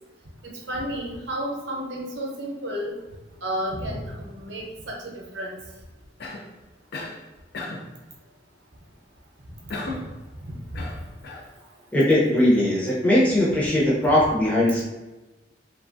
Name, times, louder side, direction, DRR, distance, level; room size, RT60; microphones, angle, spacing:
voice 1, 0.4-2.9 3.4-5.6 10.7-10.8, equal, 75° right, -1 dB, 0.7 m, -32 dB
Cough, 6.2-6.5 6.9-7.2 7.5-7.9 9.7-10.1 10.7-11.5, left 2 dB, 60° left, 0.4 m, -35 dB
voice 2, 11.9-14.8, left 1 dB, 10° left, -6 dB, 0.7 m, -20 dB
3.0 x 2.3 x 2.5 m, 1.1 s
head